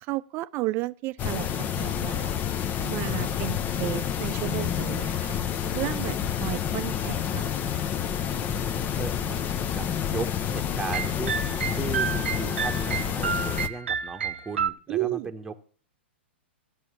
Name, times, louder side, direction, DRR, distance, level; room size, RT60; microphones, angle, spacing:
voice 1, 0.1-2.3 2.8-7.8 14.9-15.3, right 18 dB, 35° right, 0.6 m, -33 dB
sound 1, 1.2-13.7, left 9 dB, 30° left, 0.9 m, -29 dB
voice 2, 3.0-3.4 8.3-15.5, right 3 dB, 10° right, 1.3 m, -37 dB
sound 2, 10.9-14.7, right 7 dB, 75° right, 0.9 m, -30 dB
12.5 x 7.3 x 8.7 m
hypercardioid pair, 110°, 6 cm